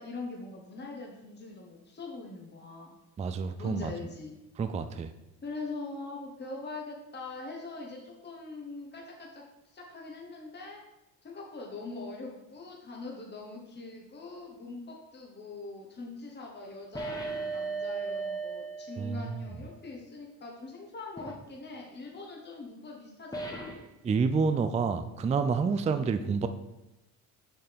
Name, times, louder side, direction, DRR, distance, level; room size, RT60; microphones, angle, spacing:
voice 1, 0.0-2.9 3.6-4.3 5.4-10.8 11.2-23.7, left 3 dB, 25° left, -1 dB, 1.4 m, -42 dB
voice 2, 3.2-3.9 4.6-5.1 19.0-19.4 24.0-26.5, right 5 dB, 15° right, 9 dB, 0.4 m, -28 dB
sound 1, 16.9-19.5 21.2-21.4 23.3-23.9, right 3 dB, 10° left, 1.1 m, -36 dB
7.1 x 5.6 x 3.6 m, 0.94 s
supercardioid pair, 80°, 43 cm